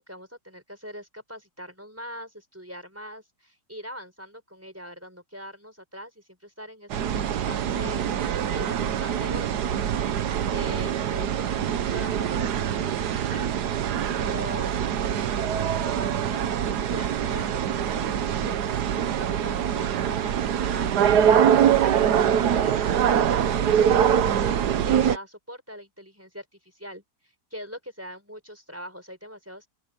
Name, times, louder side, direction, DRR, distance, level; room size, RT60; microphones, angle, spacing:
voice 1, 0.0-9.9 10.5-13.7 14.1-22.8 23.3-29.7, equal, 10° right, 4.4 m, -42 dB
sound 1, 6.9-25.2, right 9 dB, 75° right, 1.5 m, -24 dB
open air
omnidirectional pair, 1.8 m